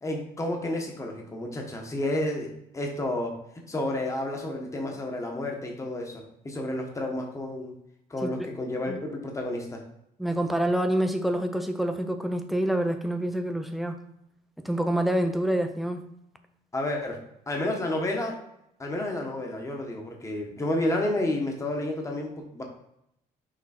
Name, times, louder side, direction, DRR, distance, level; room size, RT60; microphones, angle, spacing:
voice 1, 0.0-3.4 3.7-7.7 8.1-9.8 16.7-18.4 18.8-22.6, left 1 dB, 20° left, 1 dB, 1.3 m, -31 dB
voice 2, 10.2-14.0 14.6-16.0, right 1 dB, ahead, 6 dB, 0.7 m, -27 dB
6.1 x 3.6 x 4.3 m, 0.79 s
cardioid pair, 110°, 17 cm